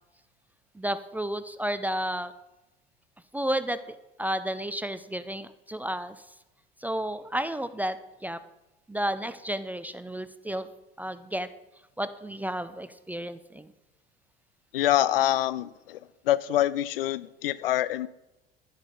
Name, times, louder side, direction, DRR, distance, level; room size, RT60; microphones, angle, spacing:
voice 1, 0.8-2.3 3.3-6.2 6.8-8.0 8.2-8.4 8.9-10.7 11.0-11.5 12.0-13.7, right 1 dB, 5° right, 13 dB, 0.4 m, -32 dB
voice 2, 14.7-16.0 16.3-18.1, left 13 dB, 70° left, 19 dB, 0.5 m, -25 dB
11.0 x 10.5 x 3.9 m, 1.0 s
figure-of-eight pair, 70°, 30 cm